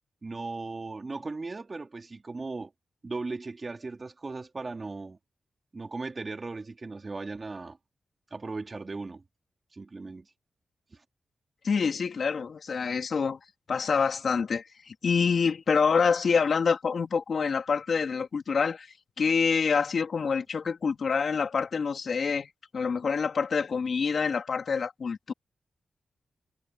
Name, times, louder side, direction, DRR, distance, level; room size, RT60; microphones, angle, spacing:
voice 1, 0.2-2.7 3.0-5.2 5.7-7.8 8.3-9.2 9.7-10.3 10.9-11.0, right 3 dB, 35° right, 2.8 m, -37 dB
voice 2, 11.6-13.4 13.7-18.9 19.2-22.5 22.7-25.3, left 5 dB, 60° left, 3.4 m, -26 dB
wide cardioid pair, 100°, 0 cm